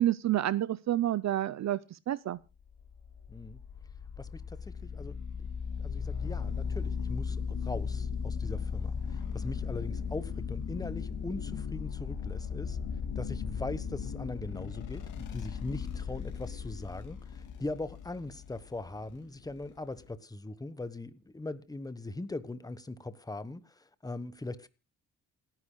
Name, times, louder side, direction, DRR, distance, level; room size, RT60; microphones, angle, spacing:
voice 1, 0.0-2.4, right 12 dB, 60° right, 0.6 m, -29 dB
sound 1, 2.7-20.1, left 6 dB, 90° left, 2.4 m, -37 dB
voice 2, 3.3-3.6 4.2-5.5 5.8-12.8 13.2-24.7, left 2 dB, 10° left, 1.2 m, -40 dB
sound 2, 6.2-10.3, left 3 dB, 45° left, 1.8 m, -54 dB
28.0 x 10.5 x 2.2 m
cardioid pair, 105°, 30 cm